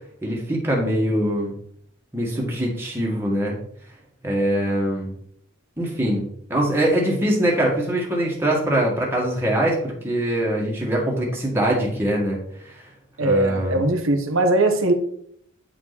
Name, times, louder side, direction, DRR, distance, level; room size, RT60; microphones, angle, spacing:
voice 1, 0.2-1.5 2.1-3.6 4.2-5.1 5.8-12.8 13.2-13.8, right 1 dB, 10° right, -2 dB, 1.7 m, -23 dB
voice 2, 13.2-14.9, right 2 dB, 80° right, 7 dB, 1.1 m, -20 dB
9.2 x 4.9 x 4.1 m, 0.66 s
head